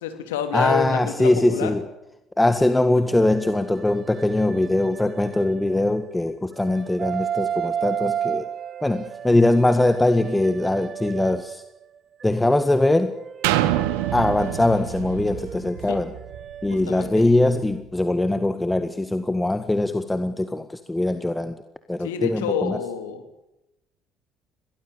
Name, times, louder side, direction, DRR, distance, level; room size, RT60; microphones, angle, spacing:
voice 1, 0.0-1.7 15.9-16.0 16.9-17.2 22.0-23.2, left 8 dB, 80° left, 8 dB, 3.1 m, -28 dB
voice 2, 0.5-1.8 2.4-8.5 8.8-11.6 12.2-13.2 14.1-16.1 16.6-21.5 21.9-22.8, left 2 dB, 10° left, 10 dB, 1.7 m, -21 dB
sound 1, 2.6-6.1 6.6-11.8 12.2-17.8, right 9 dB, 45° right, 1.0 m, -34 dB
sound 2, 13.4-17.2 17.7-17.8, right 14 dB, 75° right, 1.6 m, -27 dB
23.0 x 18.5 x 8.5 m, 0.92 s
hypercardioid pair, 55°, 0 cm